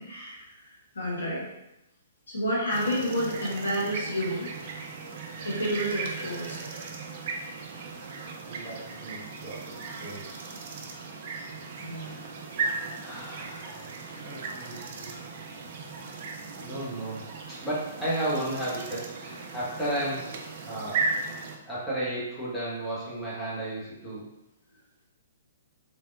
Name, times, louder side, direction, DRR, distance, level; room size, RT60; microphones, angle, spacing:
voice 1, 0.0-1.5 2.3-4.5 5.4-6.6 11.8-12.2, equal, 70° left, -4 dB, 1.2 m, -30 dB
sound 1, 2.7-21.6, right 4 dB, 45° right, 0.5 m, -37 dB
voice 2, 8.4-10.3 13.0-15.2 16.6-20.3 20.6-21.1 21.6-24.3, right 1 dB, 5° left, -9 dB, 1.2 m, -34 dB
3.5 x 3.3 x 2.6 m, 0.90 s
figure-of-eight pair, 120°, 0 cm